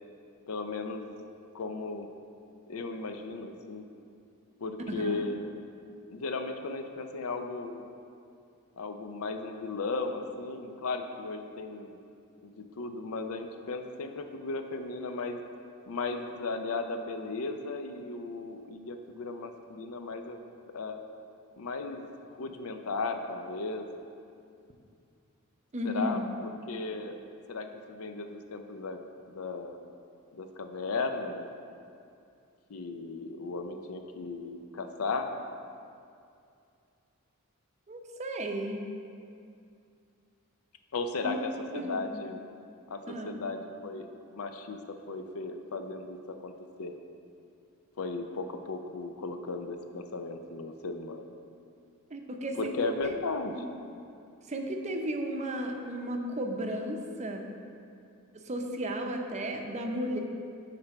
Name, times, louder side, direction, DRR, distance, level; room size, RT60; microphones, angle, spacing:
voice 1, 0.5-1.1 1.5-2.1 2.7-3.8 4.6-5.5 6.1-7.9 8.8-12.0 12.4-15.4 15.9-20.4 20.7-21.0 21.6-22.1 22.4-23.9 25.8-27.1 27.5-29.0 29.3-29.8 30.3-31.5 32.7-35.3 40.9-42.4 42.9-46.5 46.8-46.9 48.0-51.2 52.6-53.6, left 3 dB, 75° left, 6 dB, 0.6 m, -36 dB
voice 2, 4.9-5.2 25.7-26.3 37.9-38.8 41.2-41.4 41.7-42.2 43.1-43.4 52.1-52.7 53.0-53.7 54.5-57.5 58.3-60.2, equal, 30° right, 3 dB, 0.6 m, -34 dB
9.8 x 3.3 x 5.8 m, 2.5 s
head